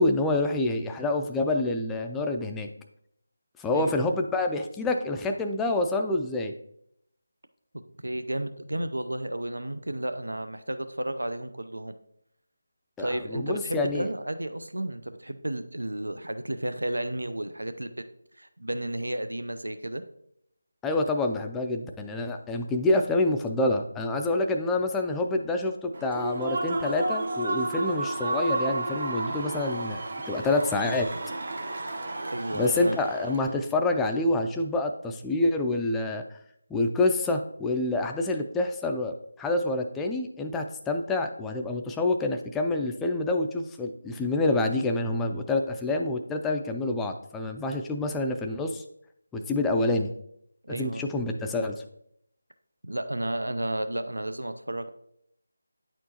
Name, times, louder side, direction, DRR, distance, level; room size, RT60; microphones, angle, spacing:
voice 1, 0.0-2.7 3.6-6.5 13.0-14.1 20.8-31.1 32.5-36.4 36.7-48.8 49.3-50.1 50.7-51.8, left 2 dB, 5° left, 4 dB, 0.3 m, -27 dB
voice 2, 8.0-11.9 13.0-18.0 18.4-20.0 32.3-33.0 50.6-51.0 52.8-54.9, right 1 dB, 90° right, 11 dB, 0.5 m, -32 dB
Human voice / Cheering / Applause, 25.9-33.6, right 2 dB, 50° right, 0.9 m, -32 dB
9.1 x 4.4 x 2.8 m, 0.73 s
figure-of-eight pair, 165°, 0 cm